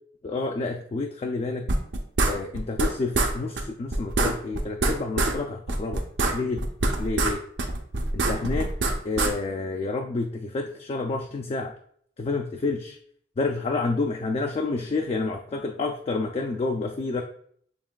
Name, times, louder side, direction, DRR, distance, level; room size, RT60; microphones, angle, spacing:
voice 1, 0.2-1.7 2.3-6.0 6.3-6.6 7.0-7.4 8.1-8.7 9.0-11.7 12.2-13.0 13.4-17.2, left 3 dB, 35° left, 3 dB, 0.3 m, -29 dB
sound 1, 1.7-2.9 3.1-3.3 3.6-3.7 3.9-5.4 5.7-7.3 7.6-9.3, right 2 dB, 70° right, 0.7 m, -24 dB
7.0 x 3.2 x 2.2 m, 0.62 s
head